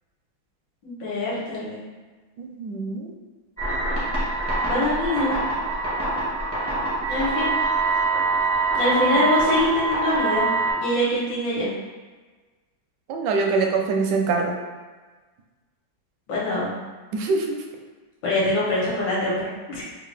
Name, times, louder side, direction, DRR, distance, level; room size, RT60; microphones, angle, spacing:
voice 1, 0.8-1.8 4.6-5.3 7.1-7.5 8.7-10.5 10.7-11.7 16.3-16.7 18.2-19.8, left 1 dB, 65° left, -6 dB, 1.7 m, -24 dB
voice 2, 2.4-3.1 9.2-9.3 13.1-14.5 17.1-17.6, right 4 dB, 75° right, 2 dB, 1.0 m, -24 dB
sound 1, 3.6-10.7, right 3 dB, 15° left, 0.4 m, -24 dB
3.7 x 2.3 x 3.2 m, 1.3 s
omnidirectional pair, 2.2 m